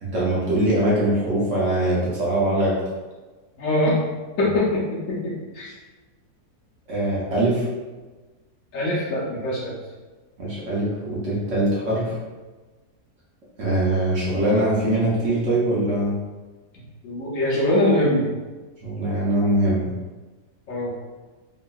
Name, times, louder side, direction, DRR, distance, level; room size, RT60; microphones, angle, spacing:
voice 1, 0.0-2.8 6.9-7.7 10.4-12.2 13.6-16.2 18.8-19.9, right 1 dB, 60° right, -7 dB, 0.9 m, -22 dB
voice 2, 3.6-4.0 4.4-5.7 8.7-9.8 17.0-18.3 20.7-20.9, left 1 dB, 65° left, -6 dB, 0.9 m, -22 dB
2.9 x 2.6 x 2.3 m, 1.3 s
omnidirectional pair, 1.7 m